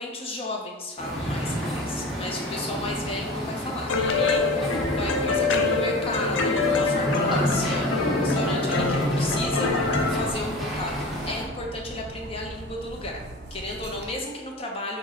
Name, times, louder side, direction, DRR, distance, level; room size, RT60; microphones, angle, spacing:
voice 1, 0.0-10.9 11.2-13.2 13.5-15.0, left 2 dB, 30° left, 0 dB, 0.7 m, -33 dB
sound 1, 1.0-11.4, equal, ahead, 1.1 m, -29 dB
sound 2, 3.9-10.3, left 4 dB, 90° left, 0.5 m, -25 dB
Dog, 8.7-14.1, right 1 dB, 60° right, 0.7 m, -40 dB
5.5 x 2.3 x 3.7 m, 1.3 s
head